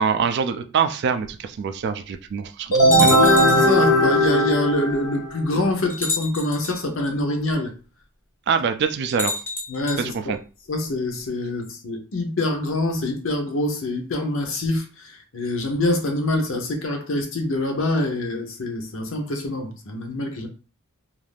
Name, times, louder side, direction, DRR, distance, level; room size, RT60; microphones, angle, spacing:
voice 1, 0.0-3.3 8.5-9.4 10.0-10.4, right 6 dB, 50° right, 0.3 m, -24 dB
sound 1, 1.3-1.4 2.1-2.2 2.9-3.8 4.9-5.0 5.9-6.8 9.1-10.0, left 2 dB, 10° left, 0.5 m, -28 dB
sound 2, 2.7-5.4, equal, 85° left, 1.0 m, -17 dB
voice 2, 3.1-7.7 9.7-10.4 10.7-20.5, left 1 dB, 60° left, 0.7 m, -25 dB
2.5 x 2.4 x 3.3 m
head